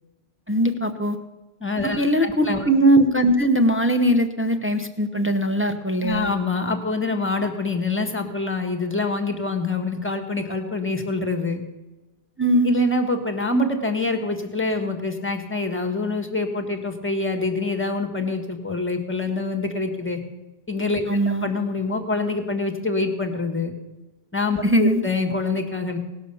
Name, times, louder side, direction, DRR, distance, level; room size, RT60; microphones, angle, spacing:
voice 1, 0.5-1.2 2.0-6.3 12.4-12.7 21.1-21.5 24.6-25.0, right 1 dB, 15° right, 7 dB, 0.7 m, -20 dB
voice 2, 1.6-2.6 6.0-11.6 12.6-20.2 20.7-23.7 24.3-26.0, left 3 dB, 10° left, 6 dB, 1.4 m, -25 dB
18.0 x 6.3 x 6.9 m, 1.1 s
omnidirectional pair, 1.1 m